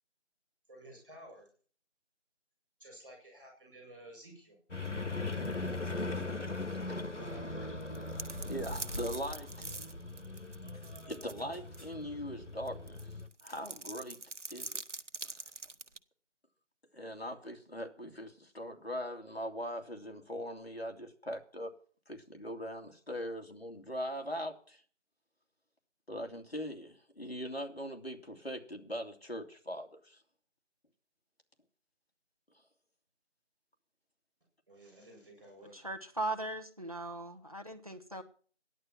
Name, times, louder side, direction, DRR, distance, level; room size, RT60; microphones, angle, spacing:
voice 1, 0.7-1.5 2.8-4.6 7.2-7.8 34.7-35.9, right 1 dB, 5° right, -19 dB, 5.9 m, -53 dB
sound 1, 4.7-13.3, left 2 dB, 85° left, 1.6 m, -39 dB
sound 2, 7.8-11.4 11.7-11.8 12.7-16.0, right 3 dB, 85° right, 1.1 m, -44 dB
sound 3, 8.3-9.4 9.6-9.7 10.0-12.0 13.4-13.8 14.4-14.8, equal, 30° left, 5.1 m, -62 dB
voice 2, 8.4-9.5 11.1-13.1 13.4-14.2 14.5-14.8 16.9-21.7 22.1-24.8 26.1-30.2, equal, 60° left, 3 dB, 2.7 m, -41 dB
voice 3, 35.7-38.2, right 2 dB, 30° right, 6 dB, 1.5 m, -39 dB
14.0 x 11.0 x 6.0 m, 0.43 s
figure-of-eight pair, 175°, 35 cm